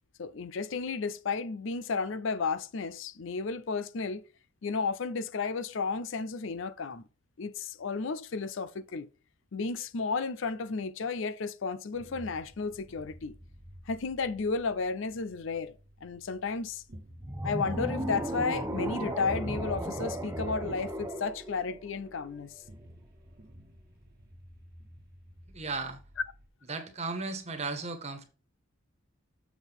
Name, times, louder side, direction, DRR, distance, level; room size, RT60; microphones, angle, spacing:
voice 1, 0.2-4.2 4.6-7.0 7.4-9.1 9.5-13.4 13.9-15.7 16.0-16.8 17.4-22.6, left 4 dB, 60° left, 0.5 m, -33 dB
sound 1, 11.9-26.5, equal, 45° right, 1.3 m, -53 dB
sound 2, 17.2-22.4, right 1 dB, 10° right, 0.6 m, -35 dB
voice 2, 25.5-26.0 26.7-28.3, right 3 dB, 30° right, 1.5 m, -35 dB
7.1 x 5.9 x 3.6 m
head